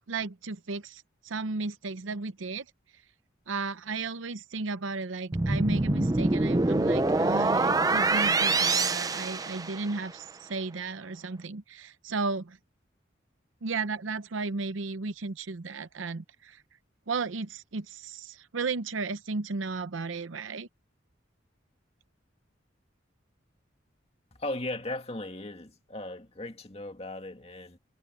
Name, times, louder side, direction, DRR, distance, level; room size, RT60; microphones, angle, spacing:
voice 1, 0.1-2.6 3.5-12.6 13.6-16.6 17.1-20.7, right 3 dB, 90° right, 0.8 m, -34 dB
sound 1, 5.3-10.1, right 3 dB, 20° right, 0.6 m, -25 dB
voice 2, 24.3-27.8, left 2 dB, 30° left, 2.3 m, -37 dB
head